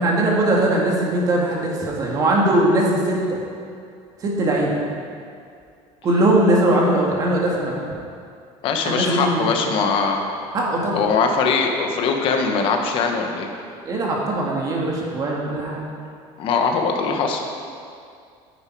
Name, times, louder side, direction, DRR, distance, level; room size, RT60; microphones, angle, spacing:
voice 1, 0.0-3.4 4.2-4.8 6.0-7.8 8.8-9.5 10.5-11.0 13.9-15.8, right 1 dB, 30° right, -2 dB, 2.0 m, -20 dB
voice 2, 8.6-10.2 10.9-13.5 16.4-17.4, left 5 dB, 50° left, 3 dB, 1.2 m, -21 dB
10.0 x 9.4 x 4.7 m, 2.3 s
cardioid pair, 160°, 12 cm